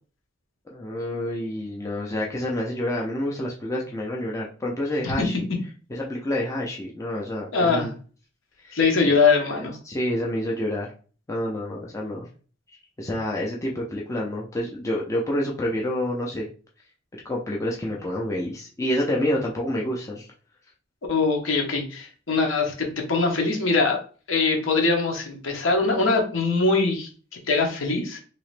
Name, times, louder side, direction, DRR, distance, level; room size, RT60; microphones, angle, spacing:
voice 1, 0.7-5.5 5.9-7.9 8.6-8.8 9.0-9.2 9.5-10.9 11.3-12.3 13.0-16.5 17.2-20.3, left 1 dB, 15° left, -3 dB, 0.5 m, -28 dB
voice 2, 7.5-7.9 8.7-9.7 21.1-24.0 24.3-27.1 27.5-28.2, left 4 dB, 75° left, 2 dB, 0.9 m, -22 dB
3.0 x 2.8 x 3.2 m, 0.39 s
head